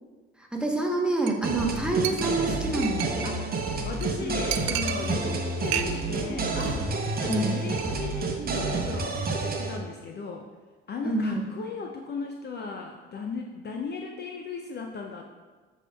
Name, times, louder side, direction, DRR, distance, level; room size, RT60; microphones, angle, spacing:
voice 1, 0.5-3.0 7.3-7.6 11.0-11.4, right 2 dB, 5° right, 0 dB, 1.0 m, -27 dB
Chink clink, 1.3-1.4 1.7-1.8 2.0-3.4 3.7-3.8 4.0-4.1 4.5-5.4 5.7-6.2 6.5-6.8 7.0-7.4 7.7-7.8, right 11 dB, 70° right, 0.4 m, -32 dB
sound 1, 1.4-9.8, right 3 dB, 30° right, 0.8 m, -29 dB
voice 2, 3.2-6.9 7.2-10.5 10.9-15.2, left 5 dB, 30° left, 2 dB, 0.5 m, -37 dB
8.0 x 5.4 x 2.3 m, 1.4 s
figure-of-eight pair, 55°, 32 cm